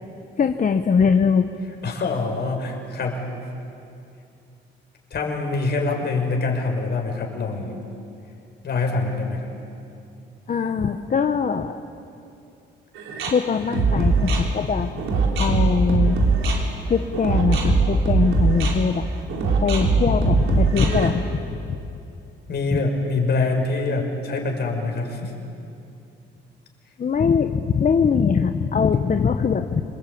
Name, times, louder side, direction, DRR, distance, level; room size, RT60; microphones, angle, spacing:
voice 1, 0.4-1.5 10.5-11.8 13.3-14.9 15.4-16.2 16.9-19.0 19.6-21.8 27.0-29.8, left 6 dB, 40° left, 7 dB, 1.1 m, -21 dB
voice 2, 1.8-3.3 5.1-7.8 8.6-9.5 22.5-25.3, left 3 dB, 55° left, 3 dB, 5.6 m, -25 dB
sound 1, 13.0-21.1, right 3 dB, 80° right, 4.1 m, -21 dB
28.0 x 21.0 x 8.7 m, 2.6 s
cardioid pair, 90°, 20 cm